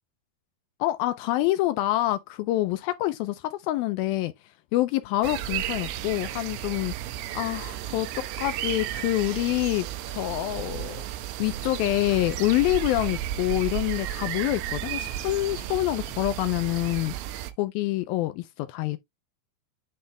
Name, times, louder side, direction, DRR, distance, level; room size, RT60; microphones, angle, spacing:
voice 1, 0.8-4.3 4.7-6.9 7.4-11.1 11.4-17.2 17.6-19.0, left 16 dB, 85° left, 2.1 m, -26 dB
sound 1, 5.2-17.5, right 12 dB, 90° right, 2.8 m, -33 dB
9.5 x 3.2 x 3.3 m
omnidirectional pair, 4.8 m